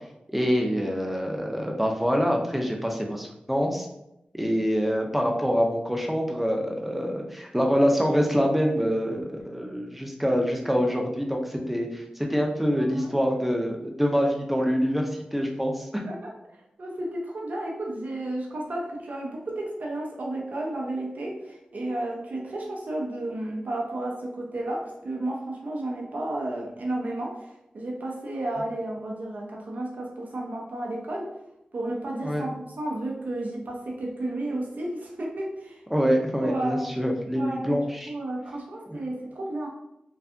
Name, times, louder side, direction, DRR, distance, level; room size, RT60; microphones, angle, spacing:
voice 1, 0.3-3.9 4.3-16.0 32.2-32.5 35.9-38.1, equal, 5° right, 1 dB, 0.5 m, -25 dB
voice 2, 12.7-13.2 16.1-16.3 16.8-27.5 27.7-31.3 31.7-36.9 37.3-37.8 38.1-39.7, right 1 dB, 65° right, -1 dB, 0.5 m, -32 dB
2.6 x 2.2 x 2.4 m, 0.86 s
wide cardioid pair, 60°, 3 cm